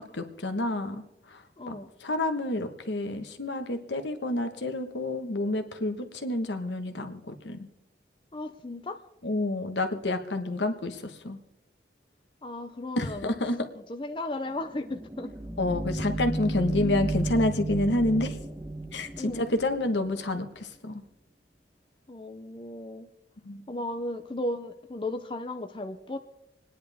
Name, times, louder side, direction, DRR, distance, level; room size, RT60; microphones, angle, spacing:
voice 1, 0.1-1.4 1.7-1.8 2.0-7.7 9.2-11.4 13.0-13.6 15.6-18.4 18.9-21.0 23.4-23.6, left 2 dB, 90° left, 7 dB, 1.3 m, -29 dB
voice 2, 1.6-1.9 8.3-9.0 12.4-13.3 13.9-15.3 19.2-19.6 22.1-23.1 23.7-26.2, left 1 dB, 30° left, 6 dB, 0.6 m, -35 dB
sound 1, 14.6-20.2, right 2 dB, 15° right, 0.9 m, -33 dB
27.0 x 10.0 x 3.5 m, 0.87 s
head